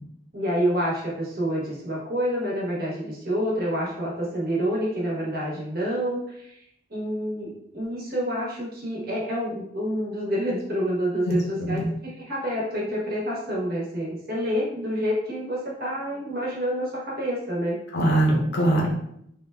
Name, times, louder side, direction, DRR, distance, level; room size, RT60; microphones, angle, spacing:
voice 1, 0.3-6.6 6.9-17.8, equal, 55° right, -5 dB, 1.0 m, -28 dB
voice 2, 11.2-11.9 17.9-18.9, right 1 dB, 70° left, -2 dB, 0.7 m, -22 dB
3.5 x 2.2 x 2.2 m, 0.73 s
head